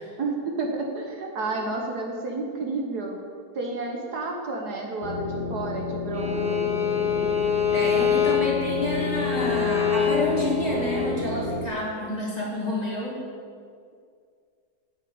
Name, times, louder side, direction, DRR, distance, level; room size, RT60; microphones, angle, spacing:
voice 1, 0.2-3.2 3.5-6.7 8.0-8.1, right 3 dB, 65° right, 1 dB, 1.7 m, -31 dB
sound 1, 5.0-11.7, left 4 dB, 55° left, 1.5 m, -31 dB
Bowed string instrument, 6.1-11.2, left 7 dB, 5° right, 0.9 m, -25 dB
voice 2, 7.7-13.2, left 1 dB, 20° left, -5 dB, 2.5 m, -28 dB
9.1 x 7.6 x 8.6 m, 2.2 s
omnidirectional pair, 1.9 m